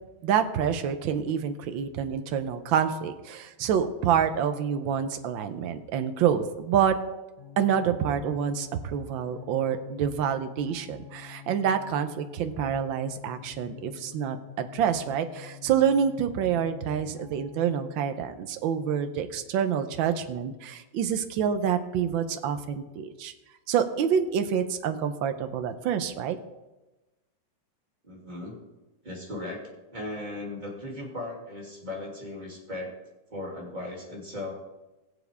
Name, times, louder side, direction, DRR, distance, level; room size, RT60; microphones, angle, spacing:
voice 1, 0.2-7.0 7.6-23.3 23.7-26.4, right 8 dB, 80° right, 8 dB, 1.6 m, -27 dB
sound 1, 7.4-18.0, left 12 dB, 80° left, 2.5 m, -47 dB
voice 2, 28.0-28.5 29.0-32.9 33.3-34.5, left 2 dB, 25° right, -3 dB, 2.8 m, -37 dB
21.0 x 7.2 x 3.5 m, 1.1 s
omnidirectional pair, 2.1 m